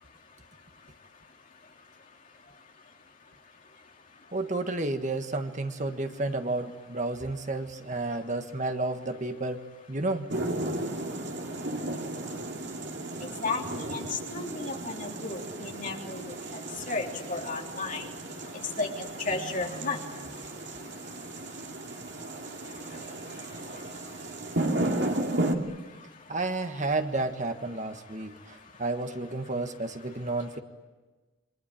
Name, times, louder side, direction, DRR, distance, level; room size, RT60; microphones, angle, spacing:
voice 1, 4.3-10.3 26.3-30.6, right 2 dB, 35° right, 7 dB, 1.5 m, -31 dB
sound 1, 10.3-25.5, right 1 dB, 55° right, 2.7 m, -34 dB
voice 2, 13.4-16.6 16.9-18.1 18.8-20.0, left 3 dB, 40° left, 1 dB, 3.5 m, -33 dB
28.5 x 24.0 x 8.7 m, 1.2 s
head